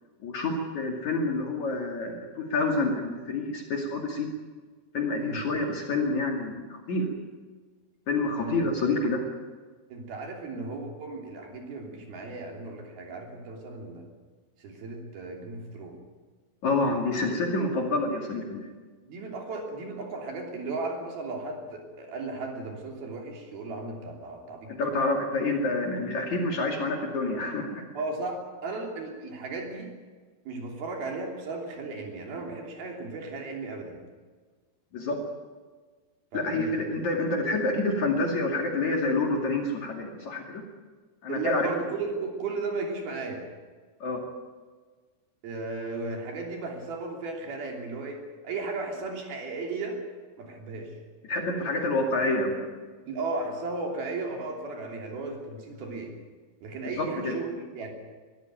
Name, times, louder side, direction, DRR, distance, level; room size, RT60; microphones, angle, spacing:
voice 1, 0.2-4.3 4.9-7.1 8.1-9.2 16.6-18.6 24.7-27.8 34.9-35.2 36.3-40.6 41.2-41.7 44.0-44.2 51.2-52.6 57.0-57.4, left 2 dB, 45° left, 1 dB, 3.3 m, -28 dB
voice 2, 5.1-5.4 8.4-8.6 9.9-14.1 14.6-16.0 19.0-24.7 27.9-29.9 30.4-34.0 36.3-37.0 41.3-43.5 45.4-50.0 50.4-51.0 53.1-56.1 56.6-57.9, right 3 dB, 60° right, 1 dB, 4.8 m, -35 dB
23.0 x 15.0 x 9.1 m, 1.4 s
omnidirectional pair, 5.2 m